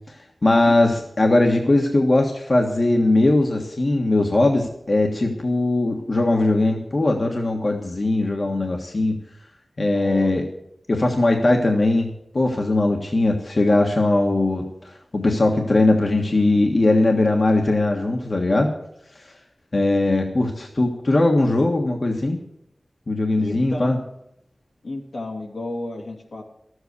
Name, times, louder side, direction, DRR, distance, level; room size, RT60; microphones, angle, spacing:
voice 1, 0.4-9.1 9.8-10.4 10.9-12.1 12.3-18.7 19.7-22.4 23.1-23.9, left 2 dB, 60° left, 2 dB, 1.5 m, -20 dB
voice 2, 9.9-10.3 20.5-20.7 23.4-24.0 24.8-26.4, left 2 dB, 85° left, 0 dB, 2.4 m, -32 dB
12.5 x 8.0 x 8.3 m, 0.78 s
wide cardioid pair, 45°, 0 cm